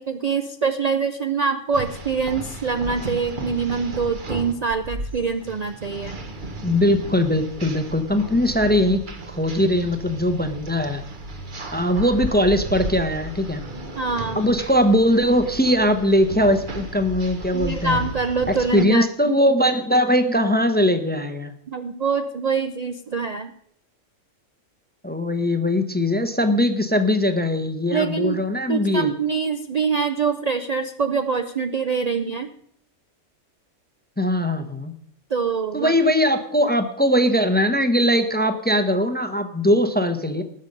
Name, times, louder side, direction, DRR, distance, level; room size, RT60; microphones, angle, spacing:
voice 1, 0.0-6.2 14.0-14.4 17.5-19.1 21.7-23.5 27.9-28.4 28.7-32.5 35.3-35.9, right 5 dB, 75° right, 8 dB, 0.3 m, -24 dB
sound 1, 1.7-18.8, right 1 dB, 35° right, 1.2 m, -34 dB
voice 2, 6.6-9.0 9.4-11.0 11.7-13.6 14.3-18.0 18.7-21.5 25.0-29.1 34.2-34.9 35.7-40.4, equal, 10° left, 9 dB, 0.5 m, -20 dB
19.5 x 6.7 x 5.3 m, 0.67 s
omnidirectional pair, 1.5 m